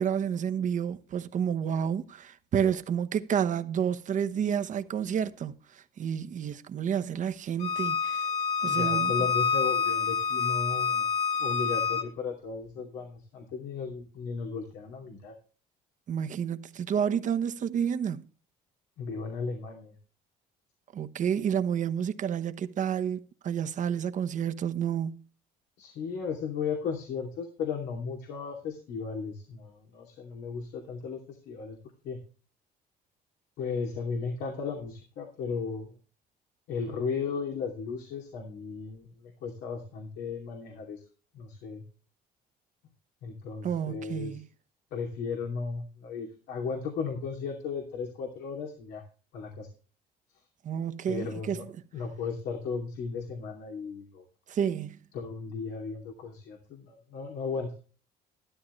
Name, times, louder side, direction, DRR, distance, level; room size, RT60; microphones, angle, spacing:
voice 1, 0.0-8.2 8.6-9.1 16.1-18.2 20.9-25.2 43.6-44.4 50.6-51.6 54.5-55.0, right 8 dB, 50° right, 1.0 m, -30 dB
Bowed string instrument, 7.6-12.1, left 6 dB, 40° left, 1.9 m, -27 dB
voice 2, 8.7-11.1 11.4-15.3 19.0-20.0 25.8-31.8 32.0-32.2 33.6-35.9 36.7-41.0 41.3-41.8 43.2-44.4 44.9-49.0 49.3-49.7 51.1-51.7 51.9-54.2 55.1-57.7, left 5 dB, 85° left, 2.7 m, -35 dB
12.5 x 12.5 x 3.2 m
cardioid pair, 110°, 17 cm